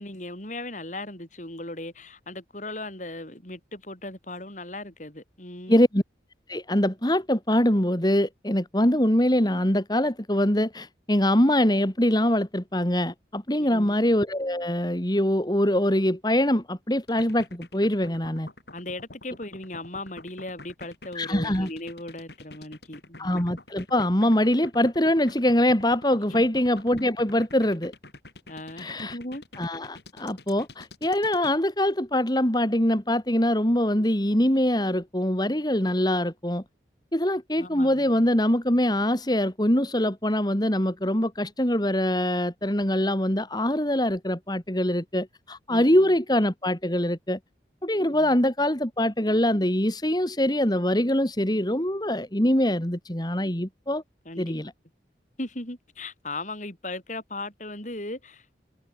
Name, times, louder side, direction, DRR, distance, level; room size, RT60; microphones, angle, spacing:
voice 1, 0.0-5.9 13.6-14.0 18.7-23.3 26.3-26.4 28.5-29.4 33.9-34.0 37.6-38.3 45.7-46.1 48.1-48.4 54.3-54.5 55.4-58.5, left 2 dB, 45° left, 6.9 m, -38 dB
voice 2, 5.7-6.0 6.5-18.5 21.1-21.7 23.2-27.9 28.8-29.2 29.6-36.6 37.1-47.4 47.8-54.0 54.4-54.7, left 1 dB, 25° left, 3.0 m, -23 dB
sound 1, 17.1-31.6, left 2 dB, 70° left, 8.0 m, -46 dB
head